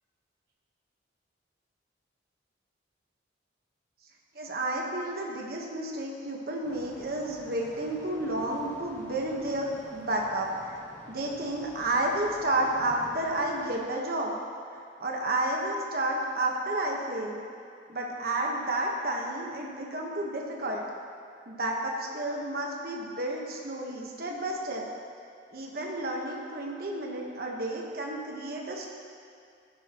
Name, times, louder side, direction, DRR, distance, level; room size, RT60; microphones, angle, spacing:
voice 1, 4.3-10.8 11.1-14.4 14.7-17.4 17.9-20.8 21.5-24.8 25.5-28.9, right 1 dB, 50° right, -1 dB, 1.3 m, -31 dB
sound 1, 6.6-13.8, equal, 10° left, 1.3 m, -50 dB
15.5 x 11.0 x 3.0 m, 2.3 s
head